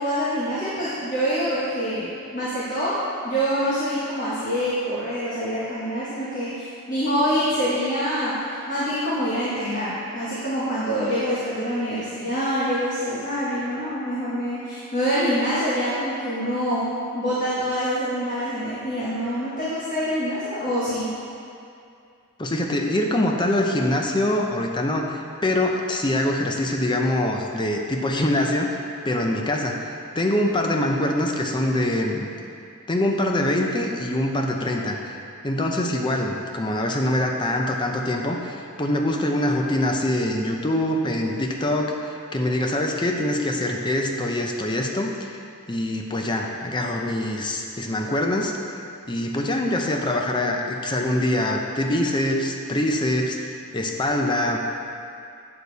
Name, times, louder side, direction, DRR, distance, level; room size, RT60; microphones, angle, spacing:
voice 1, 0.0-2.9 3.2-16.9 17.1-21.1, equal, 40° left, -9 dB, 1.4 m, -25 dB
voice 2, 22.4-28.8 29.0-29.9 30.1-32.3 32.9-35.2 35.4-45.3 45.7-48.5 49.1-54.6, left 1 dB, 20° left, 2 dB, 0.6 m, -24 dB
8.5 x 6.6 x 4.1 m, 2.5 s
head